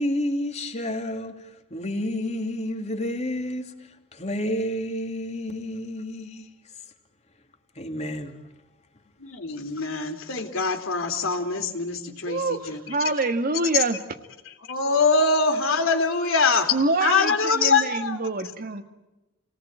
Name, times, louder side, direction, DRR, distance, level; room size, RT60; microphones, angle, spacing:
voice 1, 0.0-3.7 4.1-6.5 7.7-8.4, left 1 dB, 35° left, 2.9 m, -30 dB
voice 2, 9.2-13.1 13.7-13.8 14.4-18.2, left 4 dB, 70° left, 3.6 m, -24 dB
voice 3, 12.3-12.6 12.9-14.0 16.7-17.2 17.6-17.8 18.2-18.8, right 3 dB, 45° right, 1.7 m, -24 dB
30.0 x 19.0 x 9.0 m
head